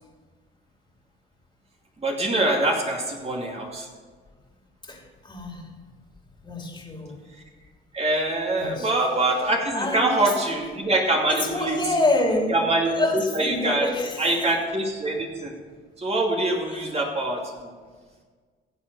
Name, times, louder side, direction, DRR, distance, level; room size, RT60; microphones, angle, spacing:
voice 1, 2.0-3.9 7.9-11.8 12.5-13.9 14.2-15.5 16.0-17.4, right 2 dB, 30° right, 0 dB, 2.5 m, -24 dB
voice 2, 4.8-5.7 6.4-7.3 8.6-8.9 9.7-10.2 11.3-14.4 16.7-16.8, left 2 dB, 25° left, 1 dB, 2.9 m, -27 dB
15.5 x 7.7 x 5.6 m, 1.5 s
cardioid pair, 90°, 20 cm